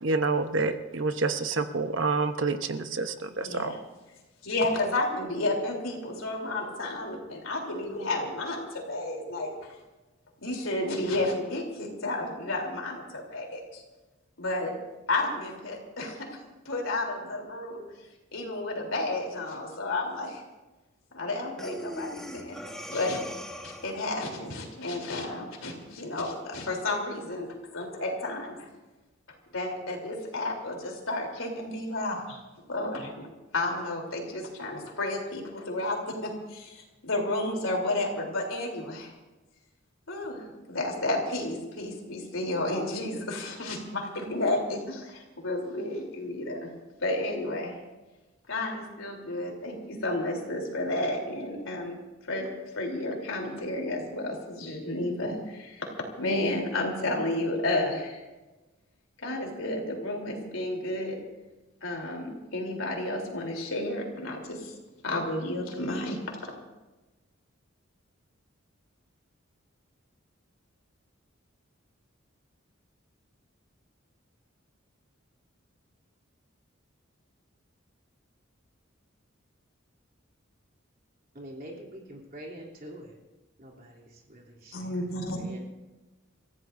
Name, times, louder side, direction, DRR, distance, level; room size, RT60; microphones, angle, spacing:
voice 1, 0.0-3.7, right 3 dB, 65° right, 8 dB, 0.9 m, -28 dB
voice 2, 3.4-3.8 4.4-9.8 10.4-13.8 14.4-14.7 15.1-16.4 16.6-17.8 18.3-20.4 21.1-22.6 22.9-23.2 23.6-28.7 29.5-32.4 32.7-33.3 33.5-39.1 40.1-40.4 40.7-46.7 47.0-47.7 48.5-52.0 52.2-52.5 52.7-55.9 56.2-58.2 59.2-61.2 61.8-64.7 65.0-66.5 84.7-85.4, left 2 dB, 75° left, 0 dB, 3.4 m, -32 dB
Breathing, 21.6-24.1, equal, 5° left, 1.4 m, -40 dB
voice 3, 81.3-83.2 83.6-85.1 85.4-85.7, right 1 dB, 45° right, -2 dB, 3.1 m, -45 dB
29.5 x 15.0 x 2.6 m, 1.1 s
head